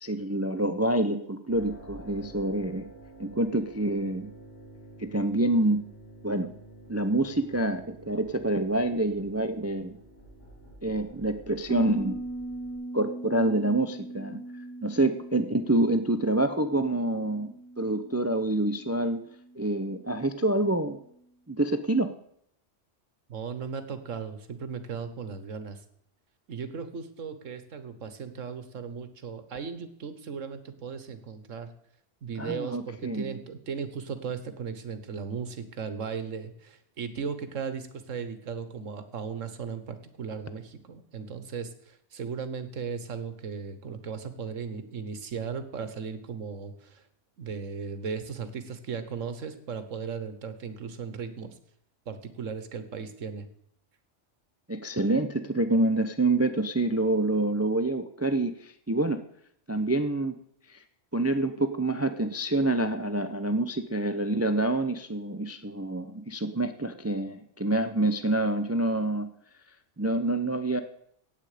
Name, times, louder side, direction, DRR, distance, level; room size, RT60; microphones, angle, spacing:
voice 1, 0.0-2.8 3.2-4.3 5.0-5.8 6.2-6.5 6.9-10.0 10.8-12.2 12.9-14.4 14.8-19.2 19.6-21.0 21.5-22.1 32.4-33.4 54.7-59.2 59.7-60.4 60.7-60.8 61.1-69.3 70.0-70.8, right 2 dB, 20° right, 10 dB, 0.4 m, -27 dB
sound 1, 1.5-12.7, right 1 dB, 75° left, 4.7 m, -49 dB
Bass guitar, 11.7-21.0, right 2 dB, 65° right, 1.4 m, -41 dB
voice 2, 23.3-25.8 26.5-31.7 32.2-47.0 47.4-51.5 52.1-53.5, right 6 dB, 90° right, 11 dB, 1.6 m, -37 dB
17.0 x 8.3 x 5.0 m, 0.70 s
omnidirectional pair, 1.3 m